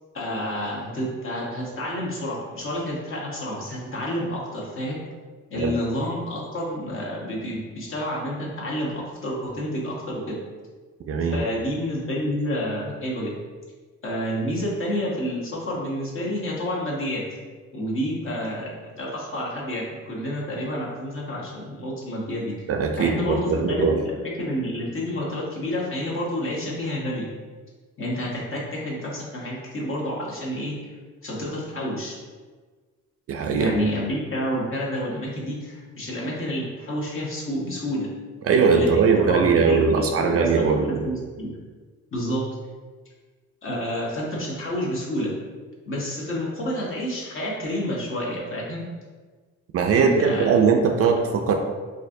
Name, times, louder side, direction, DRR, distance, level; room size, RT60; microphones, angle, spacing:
voice 1, 0.1-5.0 5.5-10.4 11.3-13.3 14.0-17.2 17.7-22.7 23.0-27.3 28.0-30.7 31.2-32.2 33.5-38.1 38.7-41.5 42.1-42.5 43.6-45.3 45.9-48.8 49.9-50.5, equal, 45° left, -4 dB, 1.1 m, -29 dB
voice 2, 11.1-11.4 22.7-24.0 33.3-33.9 38.4-41.0 49.7-51.5, right 5 dB, 50° right, 3 dB, 0.4 m, -20 dB
4.2 x 2.5 x 2.6 m, 1.4 s
cardioid pair, 90°, 30 cm